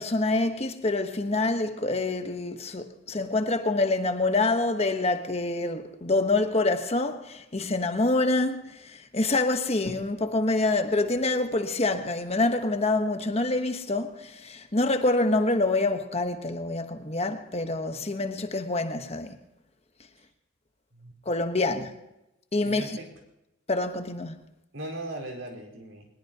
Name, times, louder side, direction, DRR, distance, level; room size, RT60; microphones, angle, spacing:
voice 1, 0.0-19.4 21.3-21.9 22.5-23.0 23.7-24.4, left 2 dB, 30° left, 1.2 m, -26 dB
voice 2, 22.6-23.1 24.7-26.1, right 1 dB, 75° right, 4.6 m, -39 dB
22.5 x 20.5 x 2.9 m
head